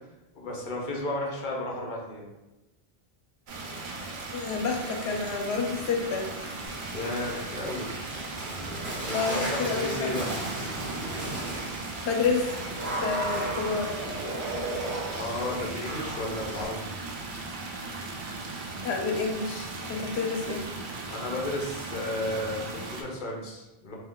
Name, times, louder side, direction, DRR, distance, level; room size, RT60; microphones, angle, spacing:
voice 1, 0.3-2.3 6.9-7.9 9.0-10.3 15.1-16.8 21.1-23.9, left 1 dB, 55° left, -2 dB, 0.7 m, -33 dB
sound 1, 3.5-23.0, right 3 dB, 60° right, 0.6 m, -38 dB
voice 2, 4.3-6.5 9.1-10.3 12.0-12.5 13.0-14.0 18.8-20.6, left 4 dB, 85° left, 1 dB, 0.8 m, -29 dB
Water / Splash splatter, 6.7-16.7, right 1 dB, 75° right, 1.1 m, -35 dB
2.7 x 2.3 x 3.6 m, 1.0 s
omnidirectional pair, 1.1 m